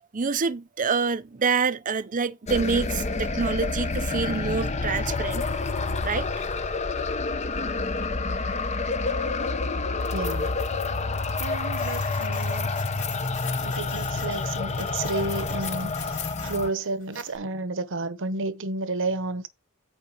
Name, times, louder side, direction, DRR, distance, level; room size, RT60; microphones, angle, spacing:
voice 1, 0.1-5.5 6.0-6.3, right 5 dB, 40° right, 0.6 m, -26 dB
sound 1, 2.5-16.7, left 3 dB, 30° left, 0.7 m, -28 dB
voice 2, 10.1-10.5 11.4-12.7 13.6-19.5, right 2 dB, 60° right, 1.0 m, -31 dB
Printer, 11.7-17.4, left 6 dB, 90° left, 4.0 m, -44 dB
9.1 x 4.1 x 5.8 m
head